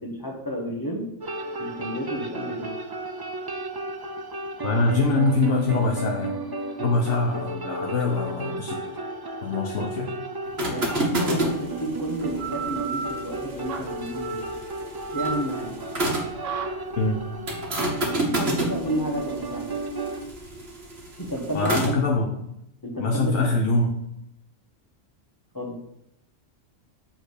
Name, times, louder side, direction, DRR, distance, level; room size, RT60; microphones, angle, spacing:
voice 1, 0.0-1.1 1.6-2.8 10.7-14.5 15.1-15.8 18.3-19.8 21.2-22.0 22.8-23.5 25.5-25.8, equal, 15° left, -1 dB, 1.5 m, -31 dB
sound 1, 1.2-20.2, right 3 dB, 35° right, 0.4 m, -33 dB
voice 2, 4.6-6.4 6.8-8.8 9.4-10.1 17.0-17.3 21.5-22.4 23.0-24.0, left 3 dB, 70° left, 1 dB, 1.1 m, -24 dB
sound 2, 10.4-16.4 17.5-22.0, right 1 dB, 55° right, 1.7 m, -30 dB
sound 3, 12.2-21.4, right 5 dB, 75° right, 1.3 m, -36 dB
7.7 x 3.6 x 6.4 m, 0.81 s
omnidirectional pair, 1.3 m